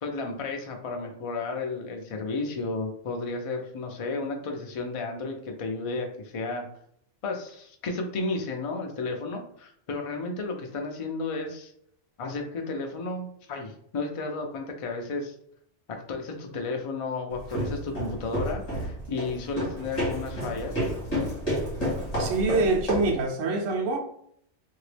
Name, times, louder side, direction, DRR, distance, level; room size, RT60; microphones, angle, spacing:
voice 1, 0.0-6.7 7.2-11.7 12.2-15.3 15.9-20.9, left 3 dB, 65° left, 2 dB, 0.3 m, -33 dB
sound 1, 17.3-23.2, equal, 30° left, 1.6 m, -30 dB
voice 2, 22.2-24.0, right 3 dB, 85° right, 3 dB, 1.0 m, -25 dB
2.9 x 2.7 x 3.2 m, 0.67 s
omnidirectional pair, 1.3 m